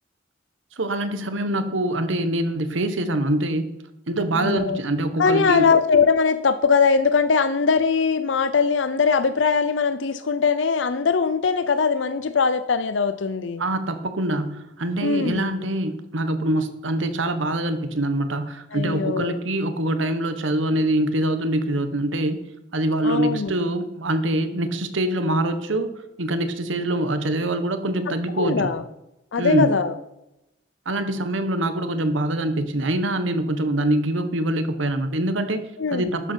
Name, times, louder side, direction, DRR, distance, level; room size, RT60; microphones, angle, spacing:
voice 1, 0.8-3.7 4.1-5.6 13.6-22.4 22.7-28.7 29.4-29.7 30.8-35.7 35.9-36.3, right 1 dB, 80° right, 9 dB, 1.3 m, -24 dB
voice 2, 4.4-4.8 5.2-13.6 15.0-15.5 18.7-19.4 23.0-23.5 28.4-28.8 29.3-29.9 35.8-36.1, left 5 dB, 70° left, 12 dB, 0.6 m, -21 dB
12.5 x 10.0 x 4.5 m, 0.91 s
head